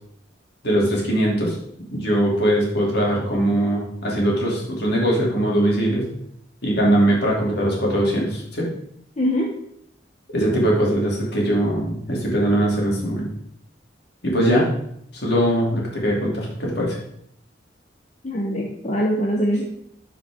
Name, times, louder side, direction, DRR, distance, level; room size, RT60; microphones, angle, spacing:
voice 1, 0.6-1.5 1.9-6.0 6.6-8.7 10.3-13.3 14.2-14.7 15.2-17.0, right 1 dB, 60° left, -3 dB, 2.7 m, -21 dB
voice 2, 9.2-9.5 18.2-19.6, equal, 40° left, -1 dB, 0.9 m, -22 dB
11.5 x 5.0 x 3.6 m, 0.71 s
head